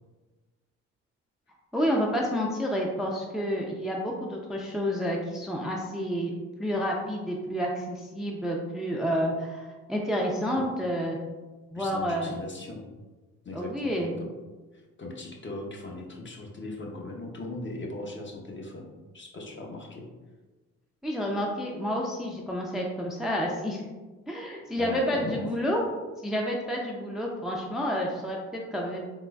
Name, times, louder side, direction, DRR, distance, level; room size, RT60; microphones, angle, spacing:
voice 1, 1.7-6.3 6.6-11.2 11.7-12.3 13.5-14.1 21.0-23.8 24.3-25.8 26.2-29.0, equal, ahead, -1 dB, 0.4 m, -29 dB
voice 2, 11.7-12.9 13.4-14.3 14.7-18.9 19.1-20.1 24.8-25.4, left 2 dB, 35° left, 0 dB, 0.8 m, -38 dB
3.8 x 3.0 x 2.3 m, 1.3 s
supercardioid pair, 60°, 32 cm